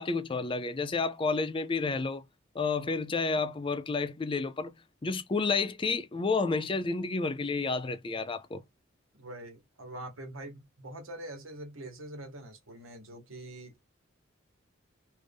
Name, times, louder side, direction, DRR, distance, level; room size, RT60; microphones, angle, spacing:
voice 1, 0.0-2.2 2.5-4.7 5.0-8.6, left 4 dB, 25° left, 0.4 m, -30 dB
voice 2, 9.2-13.8, right 1 dB, 80° right, 1.3 m, -44 dB
3.2 x 2.6 x 3.5 m
head